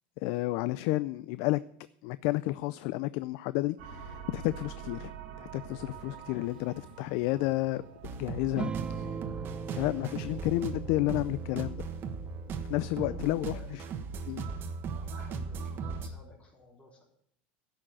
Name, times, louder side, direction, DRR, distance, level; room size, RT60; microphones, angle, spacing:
voice 1, 0.2-1.6 2.0-5.1 5.4-7.8 8.2-9.2 9.7-11.8 12.7-13.8 14.3-14.4, left 18 dB, 65° left, 16 dB, 0.4 m, -31 dB
sound 1, 3.8-11.8, right 7 dB, 85° right, 1.7 m, -48 dB
sound 2, 8.0-16.1, right 5 dB, 45° right, 1.4 m, -38 dB
sound 3, 8.6-13.5, right 6 dB, 20° right, 0.5 m, -41 dB
voice 2, 9.2-9.6 12.7-14.3 14.9-17.0, left 2 dB, 25° left, -4 dB, 3.8 m, -52 dB
11.0 x 6.3 x 8.9 m, 0.69 s
supercardioid pair, 115°, 5 cm